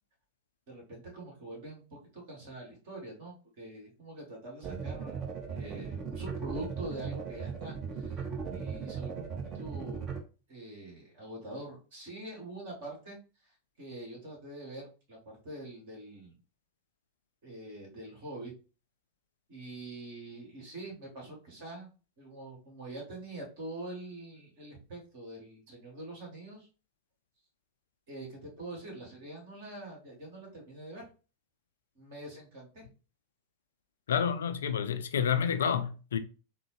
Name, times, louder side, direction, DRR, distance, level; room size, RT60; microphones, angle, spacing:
voice 1, 0.7-5.2 5.5-8.2 8.5-9.3 9.5-10.1 10.5-13.2 13.4-13.5 13.8-16.4 17.4-18.5 19.5-21.9 22.2-26.7 28.1-31.1 31.9-32.8, right 1 dB, 50° right, 1.6 m, -44 dB
sound 1, 4.6-10.2, right 6 dB, 30° right, 0.7 m, -37 dB
voice 2, 34.1-36.2, left 7 dB, 65° left, 0.3 m, -29 dB
3.8 x 2.0 x 3.1 m
figure-of-eight pair, 90°, 0 cm